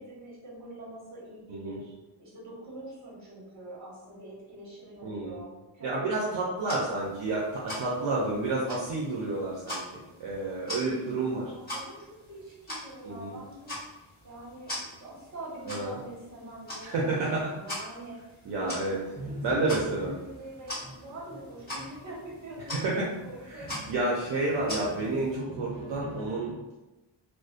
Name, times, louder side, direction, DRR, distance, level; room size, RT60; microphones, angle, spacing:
voice 1, 0.0-1.9 2.2-6.9 7.9-8.1 10.6-13.8 14.2-24.2, right 1 dB, 40° right, -7 dB, 1.1 m, -45 dB
voice 2, 5.0-5.4 5.8-11.4 13.0-13.4 15.7-15.9 16.8-17.5 18.5-19.0 19.4-20.1 22.7-23.1 23.5-23.6 23.9-26.6, right 2 dB, 65° right, -4 dB, 0.6 m, -30 dB
sound 1, 6.6-25.4, left 1 dB, 20° left, 1.1 m, -43 dB
sound 2, 18.4-26.5, equal, 15° right, 0.6 m, -44 dB
2.5 x 2.1 x 2.4 m, 1.0 s
wide cardioid pair, 140°, 45 cm